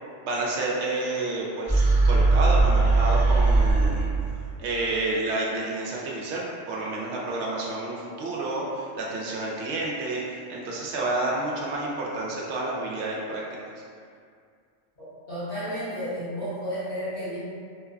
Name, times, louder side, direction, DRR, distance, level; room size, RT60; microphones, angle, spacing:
voice 1, 0.2-4.1 4.6-13.7, right 2 dB, 65° right, -4 dB, 0.8 m, -30 dB
sound 1, 1.7-4.4, right 3 dB, 25° left, 0.7 m, -20 dB
voice 2, 15.3-17.4, equal, 60° left, -13 dB, 1.4 m, -32 dB
3.1 x 2.0 x 2.4 m, 2.2 s
omnidirectional pair, 1.3 m